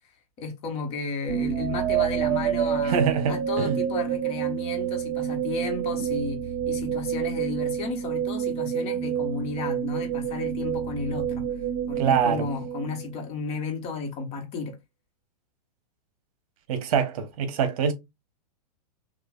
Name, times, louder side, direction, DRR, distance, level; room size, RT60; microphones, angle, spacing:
voice 1, 0.4-6.4 6.7-11.5 11.9-14.8, left 4 dB, 30° left, 1.2 m, -33 dB
sound 1, 1.3-13.3, right 9 dB, 30° right, 0.5 m, -28 dB
voice 2, 2.8-3.8 12.0-12.5 16.7-17.9, right 7 dB, 60° right, 1.1 m, -24 dB
5.9 x 2.4 x 2.4 m
hypercardioid pair, 145°, 21 cm